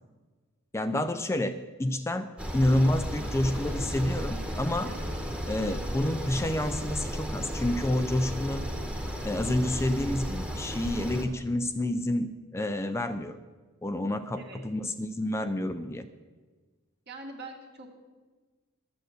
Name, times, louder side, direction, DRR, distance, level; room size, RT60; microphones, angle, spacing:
voice 1, 0.7-4.9 5.5-8.7 9.2-13.4 13.8-16.1, left 1 dB, 15° left, 8 dB, 0.4 m, -29 dB
sound 1, 2.4-11.2, equal, 5° right, 1.2 m, -34 dB
voice 2, 17.1-17.9, right 2 dB, 55° right, 1 dB, 2.0 m, -44 dB
12.5 x 6.8 x 8.0 m, 1.4 s
head